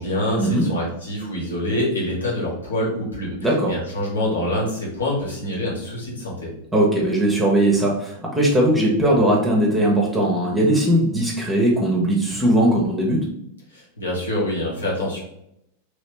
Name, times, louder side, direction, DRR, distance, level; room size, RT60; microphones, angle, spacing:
voice 1, 0.0-6.5 13.7-15.2, left 1 dB, 70° left, -4 dB, 1.5 m, -26 dB
voice 2, 3.4-3.7 6.7-13.3, right 1 dB, 10° right, -2 dB, 0.9 m, -19 dB
3.2 x 3.1 x 3.1 m, 0.77 s
figure-of-eight pair, 90°, 0 cm